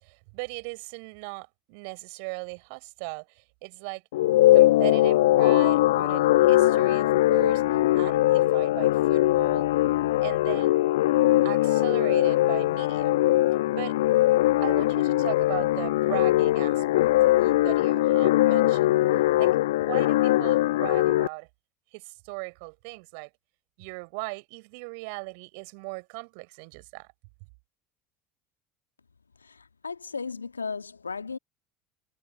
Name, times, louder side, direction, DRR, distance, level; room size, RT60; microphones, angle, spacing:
voice 1, 0.0-4.0 4.5-7.6 8.0-9.7 10.2-10.7 11.4-13.2 13.7-14.0 14.6-18.9 19.4-21.5 21.9-23.3 23.8-27.1, right 35 dB, 60° right, 4.8 m, -38 dB
sound 1, 4.1-21.3, left 16 dB, 70° left, 0.9 m, -21 dB
voice 2, 29.4-31.4, left 5 dB, 85° left, 1.9 m, -35 dB
figure-of-eight pair, 65°, 0 cm